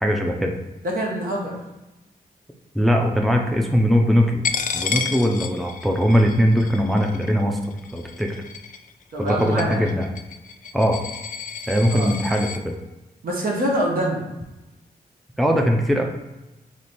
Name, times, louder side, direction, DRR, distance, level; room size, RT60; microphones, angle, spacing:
voice 1, 0.0-0.5 2.7-4.4 4.7-7.6 7.9-8.3 9.2-10.1 10.7-11.0 11.7-12.8 15.4-16.0, equal, ahead, 1 dB, 0.6 m, -20 dB
voice 2, 0.8-1.5 9.1-9.9 11.9-12.1 13.2-14.3, right 1 dB, 65° right, -2 dB, 1.3 m, -25 dB
Coin (dropping), 4.4-12.6, left 6 dB, 55° left, 0.4 m, -32 dB
3.3 x 3.2 x 4.2 m, 1.0 s
cardioid pair, 60°, 16 cm